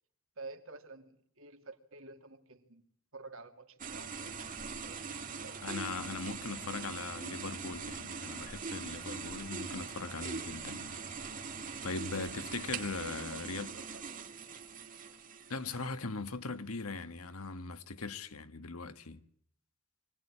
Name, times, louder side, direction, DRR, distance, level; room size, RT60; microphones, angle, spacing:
voice 1, 0.4-2.8 3.1-5.6 13.0-14.2, right 3 dB, 70° right, 2.7 m, -51 dB
sound 1, 3.8-16.1, right 5 dB, 40° right, 2.2 m, -42 dB
voice 2, 5.6-11.0 11.8-13.7 15.5-19.2, left 3 dB, 85° left, 1.4 m, -40 dB
24.5 x 18.5 x 10.0 m
head